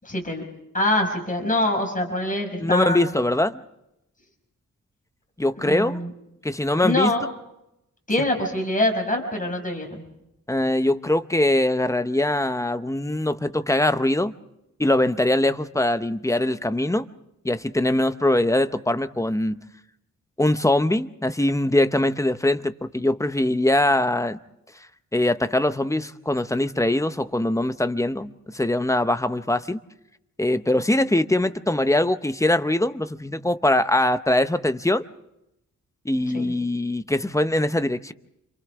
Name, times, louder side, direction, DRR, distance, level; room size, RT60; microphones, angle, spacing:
voice 1, 0.0-0.4 0.7-3.1 5.6-6.1 6.8-7.2 8.1-10.0 36.3-36.5, left 1 dB, 25° left, 2 dB, 5.6 m, -24 dB
voice 2, 2.6-3.6 5.4-6.0 6.4-7.1 10.5-14.3 14.8-17.1 17.4-19.6 20.4-24.4 25.1-29.8 30.4-35.0 36.0-38.1, left 1 dB, 10° left, 11 dB, 0.7 m, -22 dB
29.5 x 27.0 x 3.6 m, 0.84 s
wide cardioid pair, 105°, 32 cm